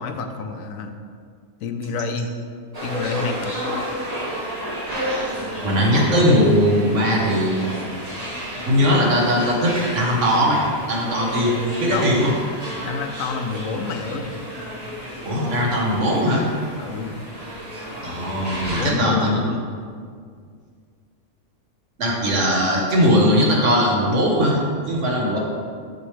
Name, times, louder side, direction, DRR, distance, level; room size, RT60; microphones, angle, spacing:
voice 1, 0.0-1.0 1.6-2.3 2.8-3.6 11.9-12.2 12.8-14.4 16.8-17.2 18.7-19.6, left 4 dB, 85° left, 6 dB, 1.0 m, -28 dB
sound 1, 2.7-18.9, equal, 30° right, 1.3 m, -31 dB
voice 2, 5.4-7.7 8.7-12.3 15.2-16.5 18.0-19.4 22.0-24.6 24.9-25.4, equal, 65° right, -2 dB, 1.5 m, -19 dB
6.8 x 6.2 x 3.3 m, 2.1 s
omnidirectional pair, 1.4 m